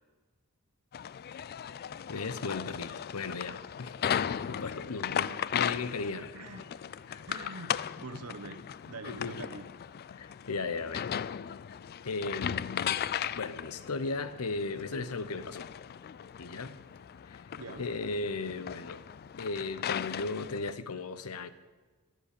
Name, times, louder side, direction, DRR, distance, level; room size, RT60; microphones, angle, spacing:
sound 1, 0.9-20.7, left 9 dB, 45° left, 0.3 m, -37 dB
voice 1, 2.1-4.0 4.3-6.3 7.1-7.2 9.1-9.4 10.1-11.1 12.0-13.1 13.4-15.7 16.4-16.8 17.3-17.4 17.8-19.0 19.4-21.5, left 3 dB, 85° left, 0.8 m, -36 dB
voice 2, 6.3-6.7 7.3-8.6 8.9-9.7 17.5-17.9, right 3 dB, 85° right, 1.2 m, -44 dB
21.5 x 7.9 x 6.7 m
head